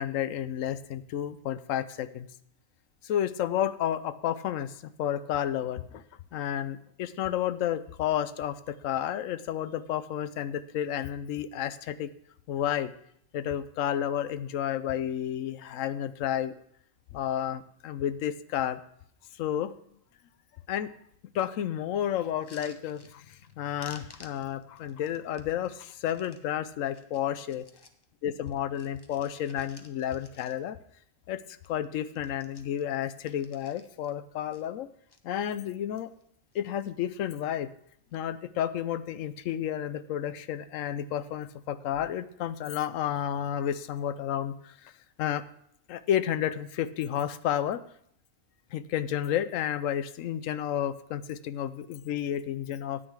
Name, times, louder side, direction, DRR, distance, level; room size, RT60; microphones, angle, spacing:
voice 1, 0.0-2.3 3.0-6.0 6.3-12.1 12.5-12.9 13.3-16.5 17.1-18.8 19.4-19.7 20.7-20.9 21.3-27.7 28.2-30.8 31.3-34.9 35.2-36.1 36.5-37.7 38.1-44.9 45.2-45.4 45.9-47.8 48.7-53.0, left 10 dB, 80° left, 14 dB, 1.0 m, -31 dB
sound 1, 22.3-23.5 23.8-26.4 26.9-28.0 28.4-30.9 31.2-31.3 31.6-34.1 34.5-35.2 35.7-36.3 36.5-37.1 37.9-38.2, left 3 dB, 30° left, 0.5 m, -54 dB
9.9 x 8.5 x 4.7 m, 0.68 s
omnidirectional pair, 1.3 m